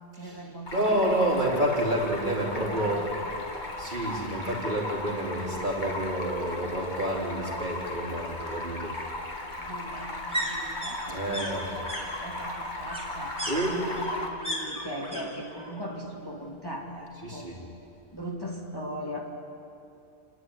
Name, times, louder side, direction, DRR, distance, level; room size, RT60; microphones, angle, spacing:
voice 1, 0.2-1.2 2.4-3.3 9.6-11.8 12.1-13.4 13.7-17.5 18.1-19.2, equal, 20° left, -3 dB, 2.5 m, -39 dB
Stream, 0.7-14.3, left 1 dB, 45° left, 1.9 m, -36 dB
voice 2, 0.7-3.0 3.8-8.9 11.1-11.7 13.5-13.7 17.2-17.6, right 1 dB, 45° right, -3 dB, 3.8 m, -29 dB
sound 1, 4.3-4.4 4.8-4.9 5.2-6.2 7.4-15.2 15.5-16.1 16.3-17.4 17.7-17.8, equal, 5° right, 4.6 m, -37 dB
30.0 x 10.5 x 9.7 m, 2.6 s
omnidirectional pair, 1.1 m